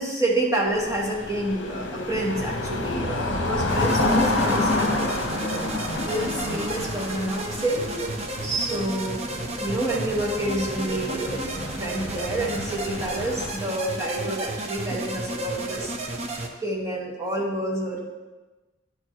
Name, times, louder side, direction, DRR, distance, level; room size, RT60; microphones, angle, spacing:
voice 1, 0.0-5.6 6.1-8.1 8.4-9.2 9.6-11.4 11.7-15.9 16.6-18.0, right 1 dB, 15° right, -3 dB, 1.1 m, -28 dB
sound 1, 0.7-13.5, left 2 dB, 70° left, 0.9 m, -29 dB
sound 2, 3.7-16.5, right 2 dB, 35° right, 0.6 m, -33 dB
10.5 x 4.4 x 3.0 m, 1.2 s
head